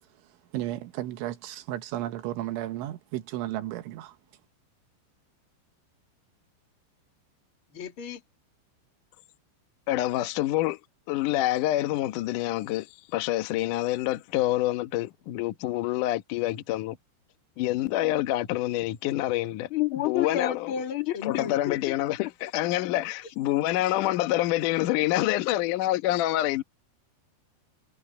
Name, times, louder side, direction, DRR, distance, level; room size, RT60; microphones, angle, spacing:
voice 1, 0.0-4.2, right 14 dB, 85° right, 3.7 m, -34 dB
voice 2, 7.7-8.2 19.7-21.9, left 11 dB, 40° left, 2.2 m, -30 dB
voice 3, 9.9-10.8 11.1-12.9 13.1-17.0 17.6-19.7 20.0-20.7 21.2-26.6, left 15 dB, 85° left, 1.8 m, -27 dB
omnidirectional pair, 5.4 m